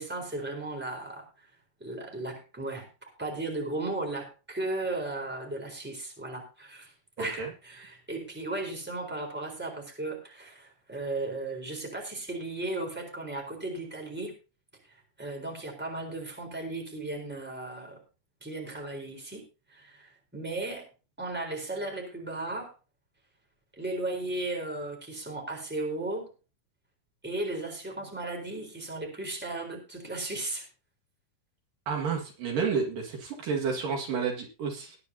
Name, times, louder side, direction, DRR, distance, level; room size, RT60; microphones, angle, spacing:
voice 1, 0.0-1.5 1.8-2.9 3.2-6.9 7.2-14.3 14.9-18.0 18.4-19.4 19.7-20.9 21.2-22.7 23.7-26.3 27.2-30.7, right 2 dB, 5° right, 2 dB, 3.6 m, -35 dB
voice 2, 7.2-7.5 31.9-35.0, right 5 dB, 65° right, 1 dB, 3.5 m, -30 dB
19.5 x 9.8 x 2.8 m, 0.33 s
omnidirectional pair, 4.2 m